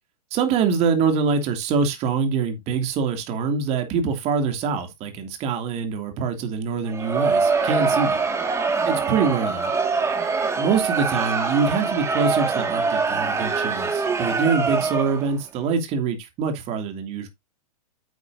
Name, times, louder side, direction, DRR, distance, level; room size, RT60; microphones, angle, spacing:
voice 1, 0.3-8.2 8.8-9.7 10.6-17.3, right 5 dB, 35° right, 2.8 m, -24 dB
Crowd, 6.9-15.3, right 4 dB, 15° right, 2.1 m, -24 dB
9.0 x 8.4 x 2.7 m
hypercardioid pair, 115°, 19 cm